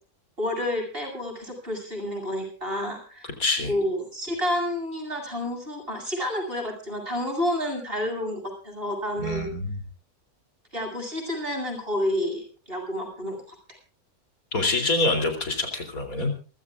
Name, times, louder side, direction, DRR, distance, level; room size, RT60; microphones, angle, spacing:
voice 1, 0.4-3.3 3.6-9.5 10.7-13.4, left 1 dB, 40° right, 2 dB, 8.0 m, -29 dB
voice 2, 3.4-3.7 9.2-9.8 14.5-16.3, left 2 dB, 70° left, 5 dB, 3.8 m, -25 dB
28.5 x 15.0 x 2.5 m, 0.36 s
omnidirectional pair, 1.6 m